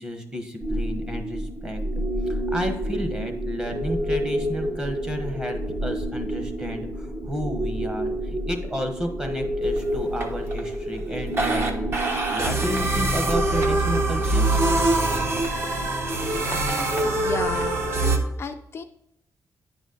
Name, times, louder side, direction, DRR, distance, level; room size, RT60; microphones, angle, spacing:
voice 1, 0.0-1.8 2.5-14.5, equal, 15° right, 4 dB, 1.1 m, -32 dB
sound 1, 0.6-18.2, right 1 dB, 40° right, 1.1 m, -26 dB
voice 2, 17.0-18.8, left 5 dB, 45° left, 5 dB, 0.4 m, -33 dB
10.5 x 4.1 x 3.9 m, 0.82 s
wide cardioid pair, 140°, 6 cm